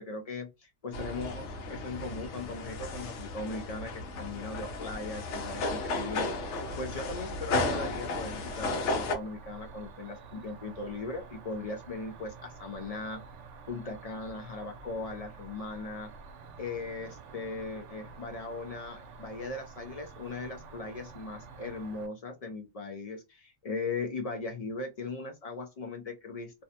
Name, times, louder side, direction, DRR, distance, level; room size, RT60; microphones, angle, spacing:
voice 1, 0.0-13.2 13.7-16.1 16.6-26.6, left 3 dB, 65° left, 0.3 m, -39 dB
sound 1, 0.9-9.1, left 2 dB, 85° left, 0.9 m, -34 dB
Cricket, 8.2-22.1, right 5 dB, 90° right, 0.9 m, -49 dB
2.6 x 2.1 x 2.6 m
omnidirectional pair, 1.2 m